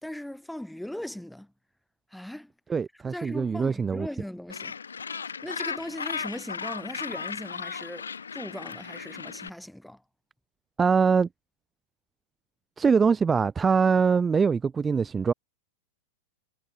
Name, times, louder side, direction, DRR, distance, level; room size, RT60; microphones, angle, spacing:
voice 1, 0.0-1.5 2.1-2.5 3.0-4.7 5.4-10.0, left 1 dB, ahead, 1.9 m, -39 dB
voice 2, 2.7-4.1 10.8-11.3 12.8-15.3, right 5 dB, 15° right, 0.5 m, -23 dB
Gull seagull, 4.5-9.5, left 6 dB, 75° left, 1.1 m, -36 dB
figure-of-eight pair, 95°, 0 cm